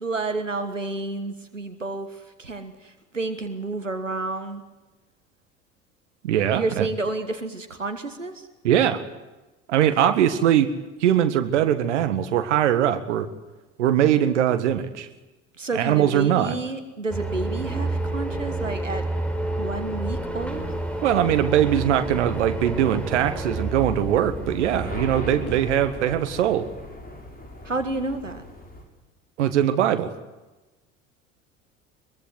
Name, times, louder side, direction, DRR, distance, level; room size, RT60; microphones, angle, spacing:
voice 1, 0.0-4.6 6.5-8.5 15.6-19.0 19.6-20.7 25.2-25.6 27.6-28.4, right 3 dB, 90° right, 8 dB, 1.6 m, -30 dB
voice 2, 6.2-6.9 8.6-9.0 9.7-10.7 11.0-13.3 13.8-15.1 15.7-16.5 21.0-26.7 29.4-30.1, right 10 dB, 70° right, 10 dB, 1.8 m, -21 dB
sound 1, 17.1-25.6, right 2 dB, 5° left, 4.6 m, -30 dB
sound 2, 20.5-28.8, left 2 dB, 25° left, 7.3 m, -40 dB
23.0 x 23.0 x 7.9 m, 1.1 s
figure-of-eight pair, 65°, 37 cm